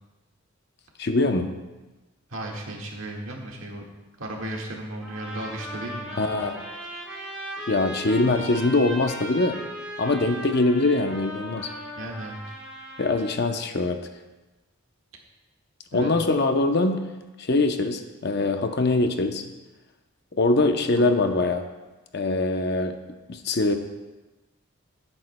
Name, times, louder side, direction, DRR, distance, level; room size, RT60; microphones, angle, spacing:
voice 1, 1.0-1.5 6.2-6.7 7.7-9.6 10.0-11.7 13.0-14.0 15.9-17.0 17.4-19.4 20.3-21.7 22.1-23.0 23.3-23.7, left 2 dB, 50° left, 6 dB, 0.7 m, -23 dB
voice 2, 2.3-3.8 4.2-6.2 11.9-12.4 15.9-16.1 21.0-21.2, right 1 dB, 70° right, -1 dB, 1.8 m, -35 dB
sound 1, 5.0-13.4, equal, 5° right, 3.4 m, -37 dB
17.0 x 8.7 x 2.2 m, 1.1 s
head